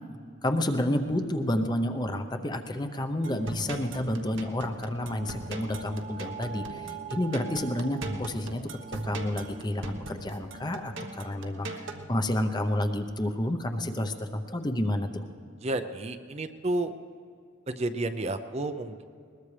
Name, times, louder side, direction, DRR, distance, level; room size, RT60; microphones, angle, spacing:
voice 1, 0.4-8.6 9.0-15.2, left 1 dB, 20° left, 7 dB, 0.7 m, -30 dB
sound 1, 3.2-12.1, right 2 dB, 80° right, 1.2 m, -39 dB
voice 2, 15.6-16.9 17.7-19.0, right 2 dB, 35° right, 9 dB, 0.6 m, -31 dB
21.0 x 20.5 x 3.3 m, 2.4 s
head